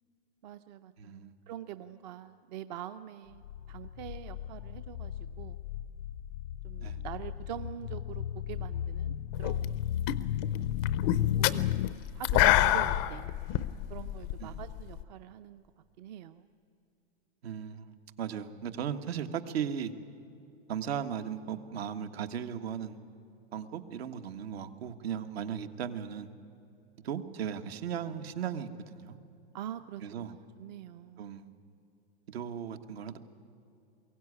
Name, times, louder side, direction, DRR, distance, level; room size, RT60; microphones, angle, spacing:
voice 1, 0.4-5.6 6.6-9.8 10.4-10.7 11.2-13.4 13.9-15.7 16.0-16.5 29.5-30.3 30.6-31.2, right 11 dB, 45° right, 12 dB, 0.6 m, -44 dB
voice 2, 1.0-1.3 6.8-7.0 14.4-14.6 17.4-19.9 20.7-23.0 23.5-26.3 27.0-29.2 30.0-30.4 31.2-31.5 32.3-33.2, right 8 dB, 75° right, 8 dB, 1.6 m, -37 dB
sound 1, 3.4-11.9, left 10 dB, 80° left, 0.6 m, -34 dB
sound 2, 9.4-9.8 10.0-15.0, left 14 dB, 25° left, 0.4 m, -27 dB
22.5 x 16.0 x 9.8 m, 2.6 s
supercardioid pair, 165°, 31 cm